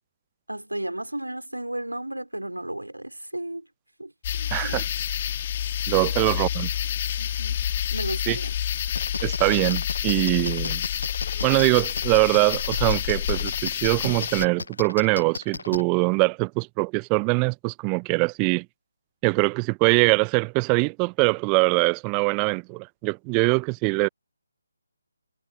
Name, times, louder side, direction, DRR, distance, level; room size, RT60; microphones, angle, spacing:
voice 1, 0.5-3.7 4.0-4.8 7.2-8.6, right 1 dB, 85° right, 4.1 m, -34 dB
sound 1, 4.2-14.5, left 10 dB, 35° left, 1.9 m, -28 dB
voice 2, 4.5-4.9 5.9-6.7 8.3-8.4 9.2-10.8 11.4-18.7 19.2-24.1, right 36 dB, 20° right, 0.4 m, -23 dB
sound 2, 9.0-15.8, left 3 dB, 60° left, 0.5 m, -33 dB
figure-of-eight pair, 145°, 0 cm